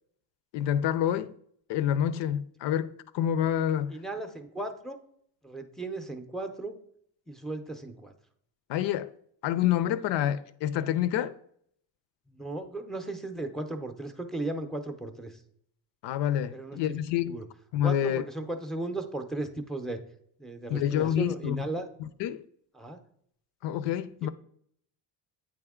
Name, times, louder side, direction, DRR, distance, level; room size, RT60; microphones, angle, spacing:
voice 1, 0.5-1.3 1.7-4.0 8.7-9.1 9.4-11.4 16.0-17.4 17.7-18.2 20.7-21.6 22.0-22.4 23.6-24.3, left 10 dB, 65° left, 0.5 m, -28 dB
voice 2, 3.9-5.0 5.4-6.7 7.3-8.1 12.3-15.4 16.5-17.4 17.8-20.0 20.4-21.9 22.7-23.0 24.2-24.3, right 2 dB, ahead, 0.6 m, -36 dB
8.7 x 3.4 x 3.6 m
cardioid pair, 95°, 46 cm